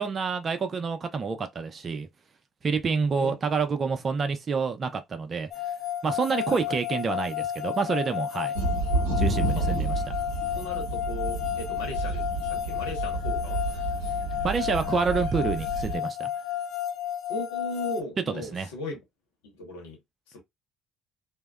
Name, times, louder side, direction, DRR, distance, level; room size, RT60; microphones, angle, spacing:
voice 1, 0.0-2.1 2.6-5.5 6.0-8.5 9.1-10.0 14.4-16.3 18.5-18.7, right 5 dB, 45° right, 0.6 m, -28 dB
sound 1, 5.5-18.0, left 11 dB, 55° left, 0.4 m, -32 dB
sound 2, 8.5-16.0, right 2 dB, 80° right, 0.8 m, -30 dB
voice 2, 10.5-13.6 17.3-19.0 19.4-20.0 20.3-20.4, left 2 dB, 80° left, 0.9 m, -37 dB
2.7 x 2.1 x 2.3 m
hypercardioid pair, 55°, 0 cm